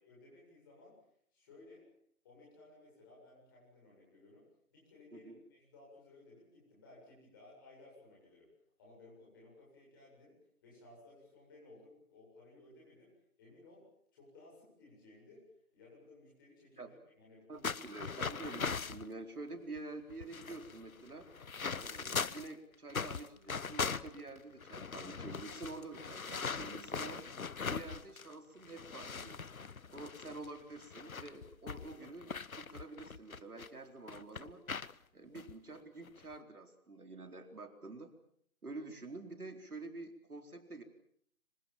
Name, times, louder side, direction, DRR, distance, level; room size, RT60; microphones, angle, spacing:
voice 1, 0.0-1.0 1.3-1.8 2.2-8.5 8.8-10.3 10.6-13.1 13.4-13.9 14.1-15.4 15.7-17.7, left 2 dB, 15° left, -4 dB, 7.8 m, -59 dB
voice 2, 17.5-21.3 21.8-27.3 27.7-29.4 29.9-34.6 35.1-38.1 38.6-40.8, right 3 dB, 75° right, 6 dB, 4.3 m, -48 dB
sound 1, 17.6-19.1 19.8-19.9 20.1-22.5 22.9-28.3 28.6-33.7 34.1-34.9 35.3-35.5 36.0-36.3, left 5 dB, 65° left, 1.1 m, -41 dB
26.0 x 26.0 x 7.4 m, 0.66 s
figure-of-eight pair, 175°, 45 cm